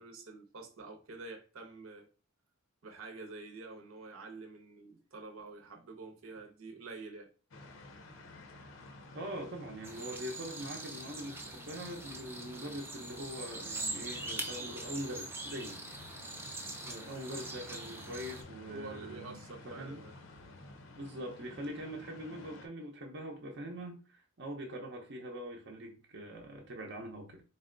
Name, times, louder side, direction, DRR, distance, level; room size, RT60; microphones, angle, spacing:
voice 1, 0.0-2.1 2.8-7.3 18.7-20.1, right 3 dB, 75° right, 0.8 m, -47 dB
sound 1, 7.5-22.7, left 2 dB, 65° left, 0.6 m, -52 dB
voice 2, 9.1-15.8 16.8-20.0 21.0-27.4, equal, 55° right, 0.7 m, -43 dB
sound 2, 9.8-18.4, right 2 dB, 10° right, 0.4 m, -43 dB
3.9 x 2.2 x 3.7 m
head